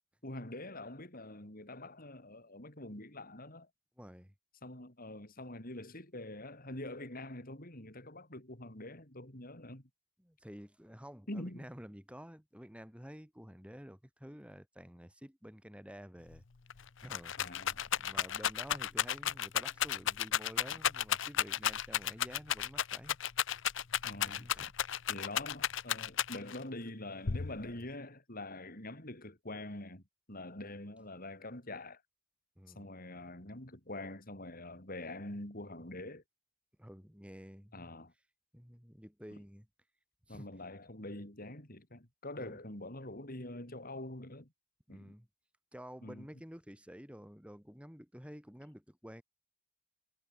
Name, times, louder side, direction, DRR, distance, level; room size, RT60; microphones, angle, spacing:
voice 1, 0.2-3.7 4.6-9.8 11.3-11.7 17.4-17.9 24.0-24.5 25.1-30.0 30.3-32.0 32.8-36.2 37.7-38.1 40.3-44.5 44.9-45.1 46.0-46.3, left 1 dB, 45° left, 5.1 m, -45 dB
voice 2, 4.0-4.3 10.2-16.4 17.0-17.6 18.0-23.2 24.2-24.7 32.6-32.9 36.8-37.9 38.5-39.7 40.3-40.5 42.4-42.6 44.9-45.3 45.7-49.2, equal, 5° right, 4.5 m, -51 dB
Rattle, 16.3-16.4 16.7-26.6 27.3-27.9, left 10 dB, 65° left, 0.8 m, -33 dB
head